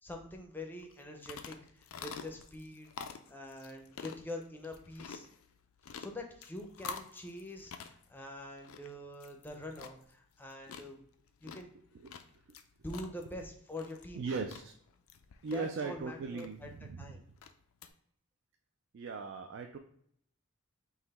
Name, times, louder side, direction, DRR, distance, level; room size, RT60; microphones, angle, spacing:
voice 1, 0.0-2.9 3.3-5.3 6.0-11.0 11.4-11.7 12.8-14.2 15.5-16.7 17.0-17.2, left 1 dB, 10° left, 3 dB, 0.5 m, -45 dB
sound 1, 0.8-17.9, left 5 dB, 70° left, 0.4 m, -49 dB
voice 2, 14.1-14.7 15.4-17.2 18.9-19.8, right 4 dB, 55° right, 5 dB, 0.3 m, -38 dB
4.0 x 2.9 x 4.1 m, 0.68 s
head